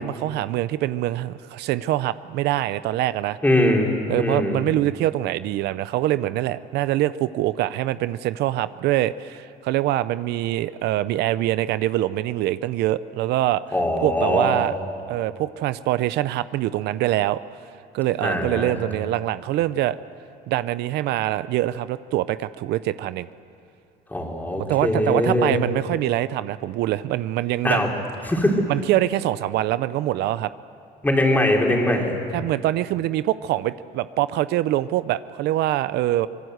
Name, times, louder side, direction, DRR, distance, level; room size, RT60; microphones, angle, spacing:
voice 1, 0.0-3.4 4.1-13.6 14.0-14.7 15.1-17.4 17.9-20.0 20.5-23.3 24.7-27.8 28.7-30.5 32.3-36.3, right 14 dB, 80° right, 15 dB, 0.6 m, -24 dB
voice 2, 3.4-4.6 13.7-14.6 18.2-18.8 24.1-25.5 27.6-27.9 28.3-28.6 31.0-32.1, left 1 dB, 10° left, 0 dB, 3.9 m, -21 dB
25.0 x 20.0 x 8.0 m, 2.6 s
cardioid pair, 110°, 17 cm